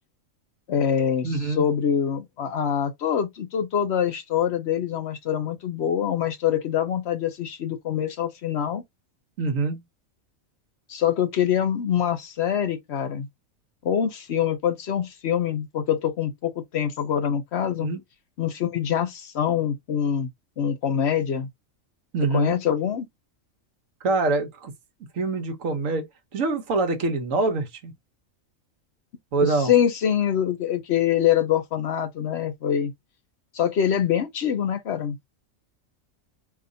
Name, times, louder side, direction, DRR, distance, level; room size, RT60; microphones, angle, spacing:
voice 1, 0.7-8.8 10.9-13.3 13.8-17.9 18.4-20.3 20.6-21.5 22.3-23.1 29.4-32.9 33.5-35.2, left 9 dB, 60° left, 0.8 m, -24 dB
voice 2, 1.2-1.6 9.4-9.8 17.8-18.0 22.1-22.6 24.0-24.7 25.1-26.0 26.3-27.9 29.3-29.7, right 3 dB, 75° right, 1.2 m, -25 dB
4.1 x 2.7 x 2.6 m
omnidirectional pair, 1.4 m